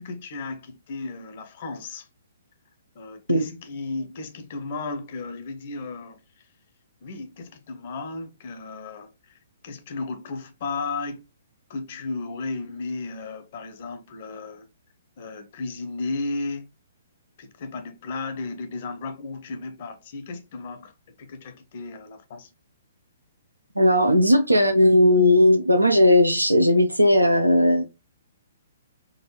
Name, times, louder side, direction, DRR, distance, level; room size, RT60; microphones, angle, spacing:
voice 1, 0.0-2.1 2.9-6.2 7.0-9.4 9.6-11.2 11.7-14.7 15.2-16.7 17.4-20.9 21.2-22.5, left 3 dB, 45° left, 0.8 m, -34 dB
voice 2, 23.8-27.8, left 1 dB, 85° right, 0.5 m, -17 dB
3.9 x 2.5 x 3.0 m
figure-of-eight pair, 120°, 0 cm